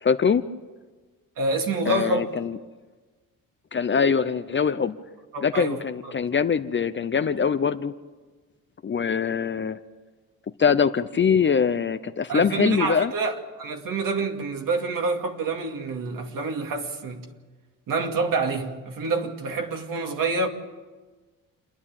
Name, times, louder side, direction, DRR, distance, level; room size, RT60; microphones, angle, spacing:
voice 1, 0.0-0.4 1.9-2.6 3.7-4.9 5.4-7.9 8.8-9.8 10.6-13.1, left 6 dB, 35° left, 0.7 m, -23 dB
voice 2, 1.4-2.2 5.3-6.1 12.3-17.3 17.9-20.5, right 3 dB, 65° right, 2.4 m, -27 dB
28.5 x 11.0 x 8.8 m
cardioid pair, 105°, 35 cm